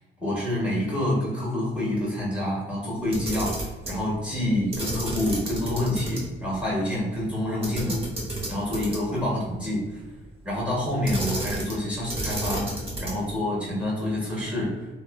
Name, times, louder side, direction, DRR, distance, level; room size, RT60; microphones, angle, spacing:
voice 1, 0.2-8.0 8.5-10.0 10.4-12.7 13.0-14.9, left 1 dB, 5° right, -6 dB, 1.4 m, -27 dB
Camera, 3.0-4.0 4.7-6.2 6.5-6.6 7.6-9.2 11.0-11.8 12.1-13.3, right 1 dB, 30° right, 0.9 m, -31 dB
2.8 x 2.2 x 2.3 m, 1.2 s
cardioid pair, 90°, 20 cm